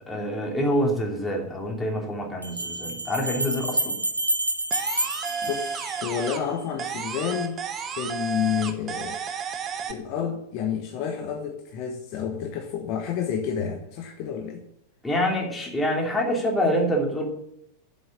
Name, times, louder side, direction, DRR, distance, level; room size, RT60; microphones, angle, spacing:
voice 1, 0.1-4.0 15.0-17.2, equal, 10° left, 0 dB, 2.8 m, -26 dB
sound 1, 0.8-0.9 2.4-6.4, right 1 dB, 85° right, 1.2 m, -29 dB
sound 2, 4.7-6.5 6.8-9.9, right 6 dB, 25° right, 1.1 m, -32 dB
voice 2, 5.4-7.6 8.0-9.2 9.9-14.6, left 8 dB, 45° left, 3 dB, 1.3 m, -29 dB
7.8 x 7.7 x 8.5 m, 0.75 s
figure-of-eight pair, 90°, 0 cm